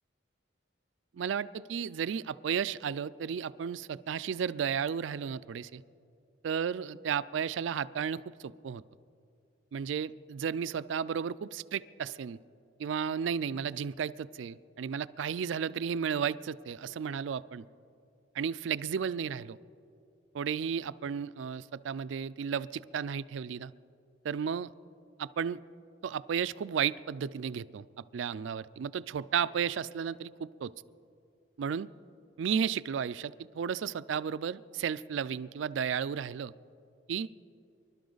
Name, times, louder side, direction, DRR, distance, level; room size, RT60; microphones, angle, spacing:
voice 1, 1.1-5.8 6.4-8.8 9.7-12.4 12.8-17.6 18.3-19.6 20.3-23.7 24.2-24.7 25.2-25.6 26.0-27.8 28.1-30.7 31.6-31.9 32.4-36.5 37.1-37.3, right 7 dB, 80° right, 17 dB, 0.4 m, -33 dB
25.5 x 12.0 x 3.9 m, 2.5 s
head